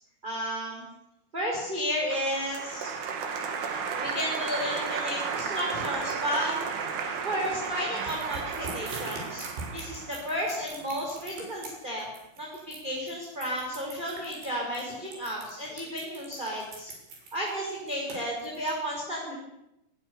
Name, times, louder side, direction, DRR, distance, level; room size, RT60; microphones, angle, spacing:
voice 1, 0.2-0.8 1.3-2.9 4.0-6.6 7.2-9.4 9.7-12.1 12.4-16.9 17.3-19.3, equal, 10° right, -2 dB, 6.0 m, -32 dB
Applause, 2.0-11.1, right 5 dB, 75° right, 5.4 m, -34 dB
sound 1, 8.1-18.7, right 3 dB, 60° right, 8.9 m, -42 dB
29.5 x 21.0 x 7.1 m, 0.87 s
omnidirectional pair, 5.7 m